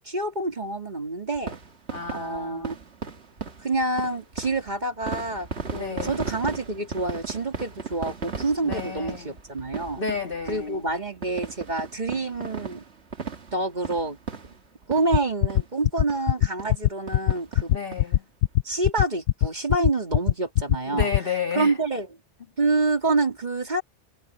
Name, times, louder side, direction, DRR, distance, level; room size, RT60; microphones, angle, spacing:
voice 1, 0.0-1.6 2.1-2.7 3.6-10.0 10.5-12.8 13.5-14.2 14.9-17.7 18.6-21.1 21.5-22.1 22.6-23.8, right 2 dB, 40° right, 2.5 m, -27 dB
sound 1, 1.3-15.2 15.5-15.7 16.1-16.2 16.6-16.8 17.1-18.0 18.4-18.5 18.7-18.8, right 5 dB, 65° right, 2.0 m, -36 dB
voice 2, 1.9-2.8 5.7-6.3 8.6-9.3 10.0-10.8 17.7-18.3 20.9-21.7, left 5 dB, 50° left, 2.3 m, -31 dB
sound 2, 15.1-21.2, left 12 dB, 80° left, 0.9 m, -20 dB
omnidirectional pair, 1.2 m